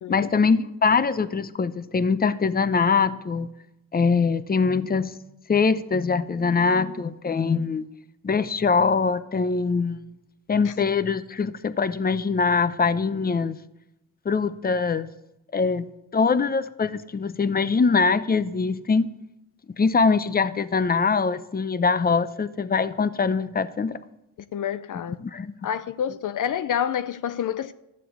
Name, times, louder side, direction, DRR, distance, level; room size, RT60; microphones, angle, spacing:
voice 1, 0.1-3.5 3.9-5.1 5.5-7.8 8.2-10.0 10.5-13.6 14.2-15.1 15.5-15.9 16.1-19.1 19.8-24.0 25.2-25.5, left 5 dB, 25° left, 0.8 m, -23 dB
voice 2, 24.5-25.2 25.6-27.7, left 9 dB, 60° left, 0.6 m, -28 dB
12.5 x 7.5 x 8.1 m
cardioid pair, 75°, 36 cm